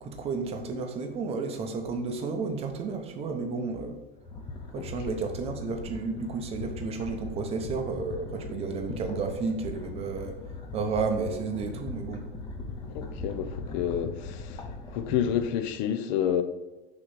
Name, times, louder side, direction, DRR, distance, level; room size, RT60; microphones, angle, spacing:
voice 1, 0.0-4.0 4.7-10.4 10.7-12.2, right 4 dB, 20° right, 0.7 m, -32 dB
sound 1, 4.1-15.7, left 3 dB, 15° left, 0.7 m, -39 dB
voice 2, 12.9-14.6 14.9-16.4, left 9 dB, 50° left, 0.6 m, -29 dB
6.4 x 3.1 x 5.8 m
supercardioid pair, 155°, 29 cm